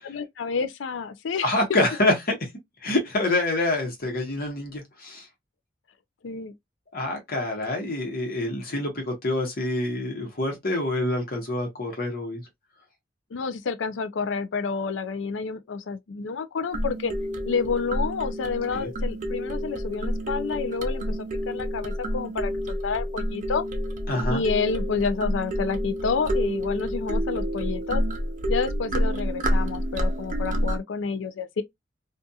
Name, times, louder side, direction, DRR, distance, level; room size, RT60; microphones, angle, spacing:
voice 1, 0.0-1.5 6.2-6.5 13.3-17.1 17.5-21.2 21.5-23.6 24.3-28.0 28.5-31.6, left 5 dB, 85° left, 0.4 m, -29 dB
voice 2, 1.4-2.4 2.8-5.2 6.9-12.4 18.7-18.9 24.1-24.4, left 2 dB, 55° left, 1.0 m, -26 dB
sound 1, 16.7-30.8, equal, 45° right, 0.4 m, -28 dB
2.7 x 2.4 x 2.3 m
head